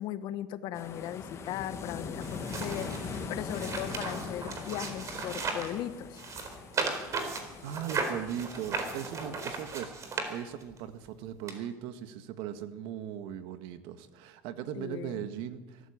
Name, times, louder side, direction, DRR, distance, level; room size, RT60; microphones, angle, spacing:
voice 1, 0.0-6.2 14.8-15.3, left 11 dB, 55° left, 11 dB, 1.4 m, -38 dB
sound 1, 0.7-9.4, left 5 dB, 30° left, 2.2 m, -41 dB
sound 2, 2.2-5.8 6.1-10.8 11.5-11.6, right 4 dB, 35° right, 4.2 m, -36 dB
voice 2, 7.6-15.9, right 10 dB, 70° right, 10 dB, 1.7 m, -39 dB
23.0 x 14.0 x 8.6 m, 1.2 s
supercardioid pair, 120°, 9 cm